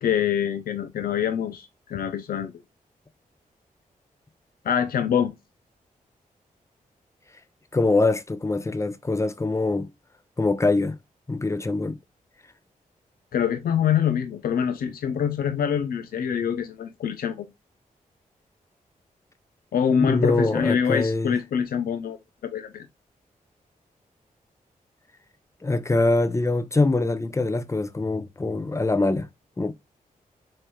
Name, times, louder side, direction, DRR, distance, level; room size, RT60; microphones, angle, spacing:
voice 1, 0.0-2.5 4.6-5.3 13.3-17.5 19.7-22.2 22.4-22.9, left 8 dB, 90° left, 0.6 m, -25 dB
voice 2, 7.7-9.9 10.4-11.0 11.3-12.0 19.9-21.3 25.6-29.3 29.6-29.7, left 2 dB, 20° left, 0.6 m, -23 dB
4.4 x 3.2 x 2.2 m
cardioid pair, 70°, 15 cm